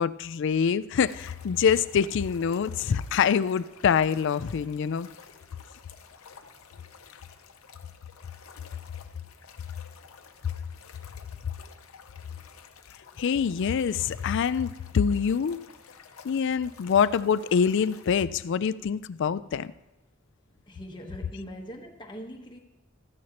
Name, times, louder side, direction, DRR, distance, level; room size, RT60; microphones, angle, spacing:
voice 1, 0.0-5.1 13.2-15.6 16.2-19.7, left 7 dB, 60° left, 17 dB, 0.4 m, -25 dB
sound 1, 1.1-18.2, left 6 dB, 80° left, 0.7 m, -51 dB
voice 2, 20.6-22.6, equal, 20° left, 1 dB, 1.2 m, -41 dB
13.5 x 9.4 x 2.9 m, 1.1 s
head